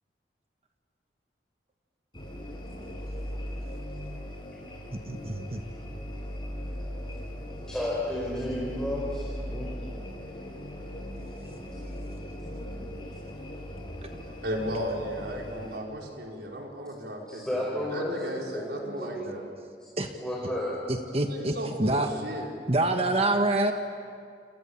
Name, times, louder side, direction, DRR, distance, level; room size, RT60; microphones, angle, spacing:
sound 1, 2.1-15.8, equal, 30° left, 5.5 m, -38 dB
voice 1, 5.1-5.6 20.0-20.1 20.9-22.1 22.7-23.7, right 2 dB, 35° right, 5 dB, 1.4 m, -26 dB
voice 2, 7.7-9.7 17.3-19.3 20.2-20.8, left 1 dB, 5° left, -5 dB, 4.9 m, -32 dB
voice 3, 14.4-17.4 17.7-19.4 21.2-22.5, equal, 70° right, -1 dB, 5.1 m, -35 dB
30.0 x 27.0 x 7.2 m, 2.3 s
head